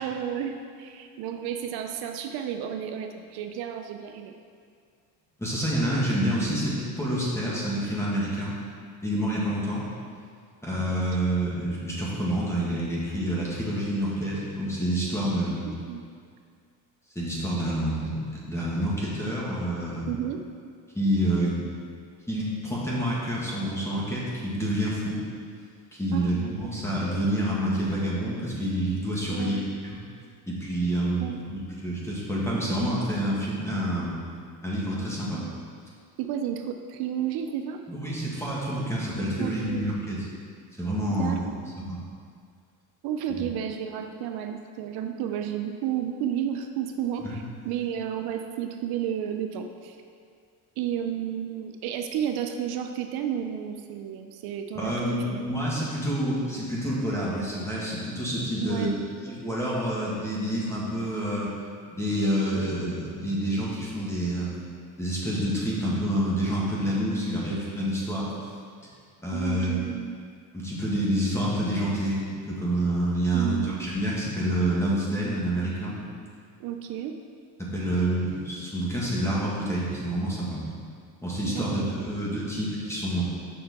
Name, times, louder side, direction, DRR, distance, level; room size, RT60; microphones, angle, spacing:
voice 1, 0.0-4.3 7.5-7.6 15.7-16.0 20.1-20.4 26.1-26.7 29.3-29.7 31.2-31.4 35.3-35.6 36.2-37.8 39.4-39.9 41.1-41.6 43.0-50.0 50.8-55.4 58.6-59.0 69.3-70.2 73.3-73.8 76.6-77.2 81.5-82.2, right 9 dB, 70° right, 6 dB, 0.6 m, -32 dB
voice 2, 5.4-8.6 9.0-9.8 10.6-15.7 17.2-20.1 21.0-21.6 22.3-25.2 26.0-30.0 30.5-34.1 34.6-35.4 37.9-40.2 40.8-41.4 41.9-42.0 47.2-47.4 54.8-58.9 59.2-61.5 61.9-64.5 65.0-68.3 69.2-69.8 70.5-76.0 77.7-80.6 81.2-83.2, right 1 dB, 5° left, -6 dB, 1.8 m, -28 dB
7.3 x 5.6 x 4.2 m, 2.2 s
cardioid pair, 125°, 38 cm